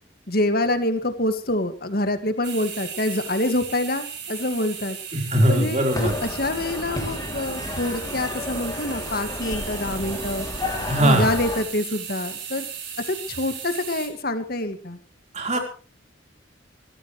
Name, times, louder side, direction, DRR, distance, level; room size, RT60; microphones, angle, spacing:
voice 1, 0.3-5.0 5.5-10.5 11.0-12.7 13.1-15.0, left 1 dB, 50° left, 9 dB, 2.1 m, -26 dB
sound 1, 2.4-14.1, right 7 dB, 60° right, 5.8 m, -36 dB
voice 2, 5.1-6.1 10.9-11.3 15.3-15.6, right 1 dB, 35° right, 3 dB, 4.5 m, -20 dB
sound 2, 5.9-11.6, left 2 dB, 20° left, 3.1 m, -32 dB
23.5 x 15.5 x 3.3 m, 0.36 s
head